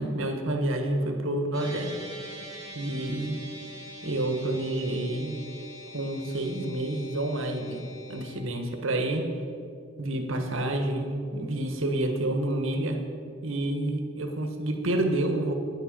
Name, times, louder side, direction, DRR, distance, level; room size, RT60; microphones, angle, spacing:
voice 1, 0.0-2.0 2.7-3.4 4.0-5.4 5.9-9.3 10.0-13.1 13.4-15.5, right 1 dB, 70° right, 5 dB, 1.5 m, -29 dB
sound 1, 1.5-8.3, equal, 20° right, 2.1 m, -44 dB
10.5 x 8.8 x 7.6 m, 2.4 s
head